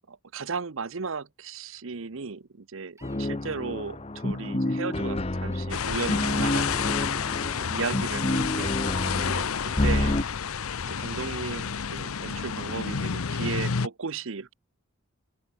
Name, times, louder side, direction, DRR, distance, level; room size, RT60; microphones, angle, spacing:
voice 1, 0.1-4.0 4.2-7.2 7.6-8.7 9.1-10.2 10.9-14.5, right 4 dB, 65° right, 0.8 m, -35 dB
sound 1, 3.0-10.2, left 1 dB, 30° left, 0.9 m, -29 dB
sound 2, 3.0-3.2 4.1-4.3 5.5-5.7 6.4-6.6 7.3-8.2 8.9-9.0, right 3 dB, 15° right, 6.1 m, -58 dB
sound 3, 5.7-13.9, left 6 dB, 85° left, 0.8 m, -30 dB
open air
head